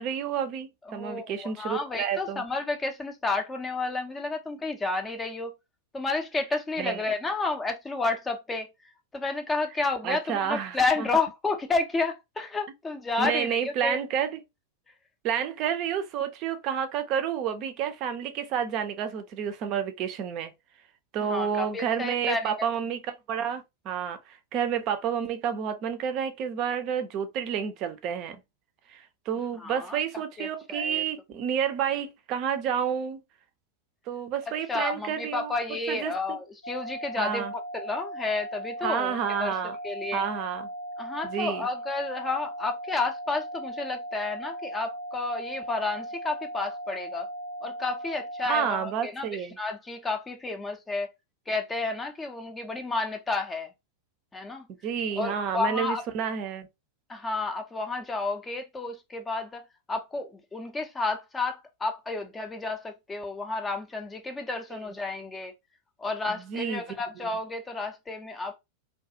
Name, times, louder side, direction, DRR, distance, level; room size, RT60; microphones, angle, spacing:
voice 1, 0.0-2.4 6.8-7.0 10.0-11.1 13.2-14.4 15.2-20.5 21.1-28.4 28.9-33.2 34.1-35.5 35.9-36.4 37.2-37.5 38.8-39.8 40.1-40.7 41.2-41.7 48.5-49.6 54.7-56.7 66.3-66.8, right 8 dB, 40° right, 0.5 m, -30 dB
voice 2, 0.9-5.5 5.9-8.7 9.1-14.0 21.2-22.6 29.6-30.0 30.4-31.0 34.7-39.1 39.4-39.5 39.8-40.2 41.0-47.3 47.6-49.3 49.6-51.1 51.5-53.7 54.3-54.6 55.1-56.0 57.1-65.5 66.0-68.6, left 3 dB, 15° left, 0.5 m, -31 dB
sound 1, 36.6-48.7, right 1 dB, 70° left, 0.5 m, -38 dB
2.3 x 2.3 x 2.7 m
figure-of-eight pair, 90°, 0 cm